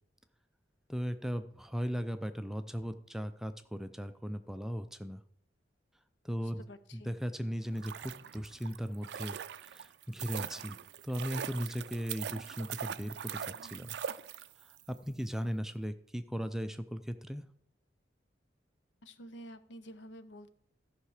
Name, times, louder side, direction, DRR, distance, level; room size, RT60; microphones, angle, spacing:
voice 1, 0.9-5.2 6.2-6.6 6.9-14.0 14.9-17.4, equal, ahead, 9 dB, 0.4 m, -37 dB
voice 2, 6.4-7.1 19.0-20.5, equal, 80° left, 12 dB, 0.7 m, -50 dB
sound 1, 7.6-14.8 15.1-15.2, right 8 dB, 65° right, 0.3 m, -42 dB
13.5 x 5.8 x 4.9 m, 0.66 s
head